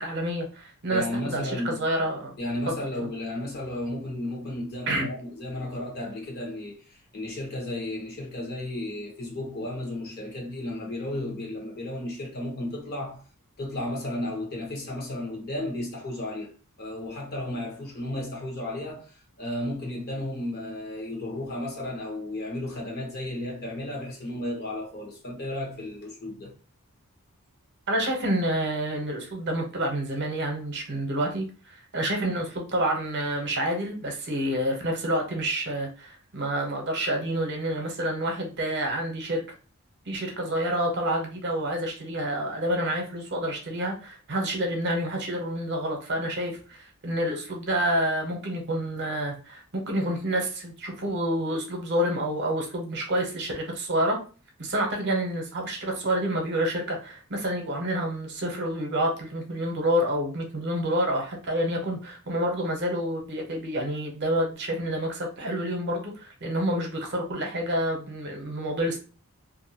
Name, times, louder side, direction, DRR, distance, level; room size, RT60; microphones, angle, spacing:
voice 1, 0.0-2.3 2.7-2.8 4.9-5.1 27.9-39.4 40.1-54.2 54.6-69.0, right 1 dB, 50° right, 0.8 m, -28 dB
voice 2, 0.9-1.8 2.4-13.2 13.6-16.5 16.8-26.5, left 1 dB, 45° left, 1.0 m, -33 dB
2.6 x 2.4 x 2.7 m
head